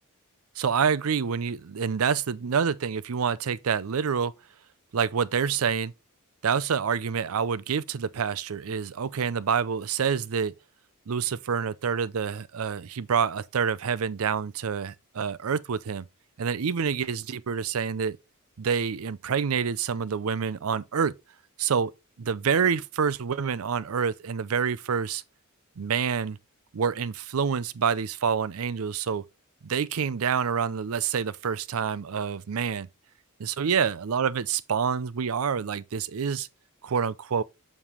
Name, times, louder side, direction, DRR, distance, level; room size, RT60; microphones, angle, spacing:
voice 1, 0.6-4.3 4.9-5.9 6.4-10.5 11.1-16.0 16.4-18.2 18.6-21.1 21.6-21.9 22.2-25.2 25.8-26.4 26.7-29.2 29.6-32.9 33.4-36.5 36.8-37.4, right 6 dB, 75° right, 0.5 m, -27 dB
7.4 x 5.4 x 3.1 m
head